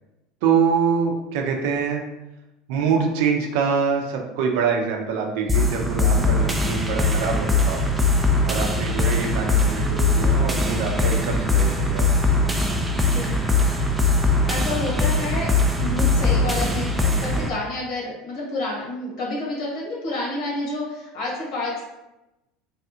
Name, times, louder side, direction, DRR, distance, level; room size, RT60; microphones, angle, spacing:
voice 1, 0.4-2.0 2.7-7.8 8.5-12.1, right 6 dB, 75° right, 2 dB, 0.6 m, -24 dB
sound 1, 5.5-17.5, left 2 dB, 10° right, 0.4 m, -21 dB
voice 2, 6.0-6.4 13.0-13.3 14.5-15.5 15.8-21.8, left 2 dB, 60° left, -4 dB, 1.4 m, -29 dB
3.3 x 2.3 x 2.8 m, 0.97 s
supercardioid pair, 110°, 0 cm